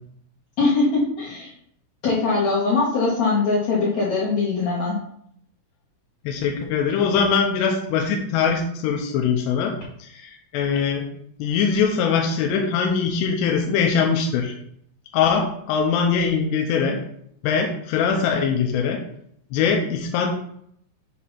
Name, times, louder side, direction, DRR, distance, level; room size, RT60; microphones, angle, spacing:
voice 1, 0.6-1.5 2.0-5.0, left 3 dB, 60° left, -9 dB, 1.8 m, -21 dB
voice 2, 6.2-9.7 10.0-11.1 11.4-14.5 15.1-17.0 17.4-19.0 19.5-20.3, left 6 dB, 85° left, 2 dB, 2.5 m, -22 dB
7.7 x 2.8 x 5.7 m, 0.69 s
omnidirectional pair, 5.6 m